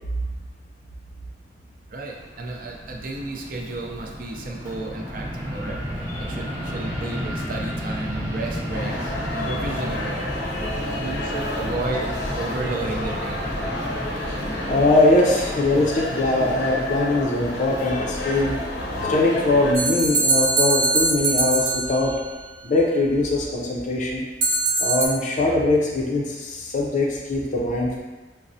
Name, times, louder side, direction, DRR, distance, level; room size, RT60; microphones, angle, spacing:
voice 1, 1.9-10.3 11.0-12.1 12.3-13.8, right 2 dB, 50° right, 0 dB, 0.5 m, -33 dB
Fixed-wing aircraft airplane, 2.1-19.9, equal, 10° right, 1.0 m, -33 dB
sound 1, 8.7-19.7, left 1 dB, 80° left, 0.7 m, -30 dB
voice 2, 10.5-11.3 14.7-18.6 19.0-22.1 22.6-24.2 24.8-28.0, left 2 dB, 40° left, -2 dB, 0.5 m, -22 dB
sound 2, 19.7-22.3 24.4-25.1, right 2 dB, 70° right, 0.8 m, -22 dB
5.9 x 2.0 x 2.6 m, 1.2 s
head